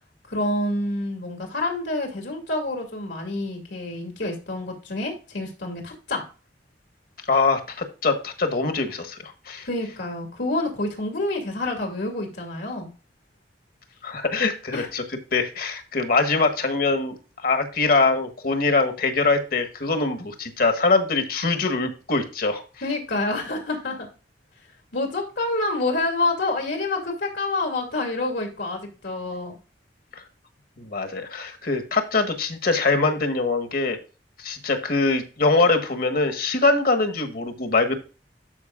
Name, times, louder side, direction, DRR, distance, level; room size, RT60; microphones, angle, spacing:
voice 1, 0.3-6.2 9.6-12.9 14.7-14.9 22.8-24.1 24.9-29.6, left 2 dB, 80° left, 2 dB, 2.4 m, -27 dB
voice 2, 7.3-9.7 14.0-15.0 15.3-17.2 17.4-22.6 30.8-34.0 34.4-38.0, left 3 dB, 55° left, 7 dB, 1.4 m, -23 dB
12.5 x 5.1 x 2.4 m, 0.34 s
head